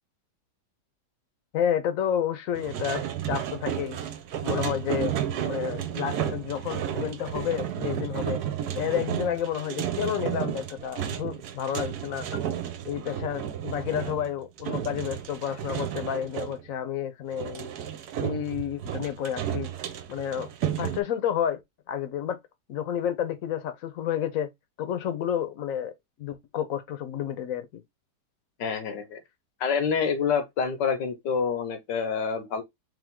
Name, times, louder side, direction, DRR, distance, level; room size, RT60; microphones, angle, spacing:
voice 1, 1.5-4.0 4.4-5.2 5.5-8.4 8.7-12.4 12.9-17.7 18.2-19.7 20.1-20.5 20.8-21.6 21.9-22.4 22.7-24.5 24.8-25.9 26.2-27.8, left 9 dB, 60° left, 1.0 m, -30 dB
sound 1, 2.5-16.6 17.3-21.0, right 10 dB, 70° right, 1.2 m, -32 dB
voice 2, 28.6-29.2 29.6-32.6, left 6 dB, 90° left, 1.6 m, -27 dB
3.5 x 3.4 x 3.7 m
omnidirectional pair, 1.8 m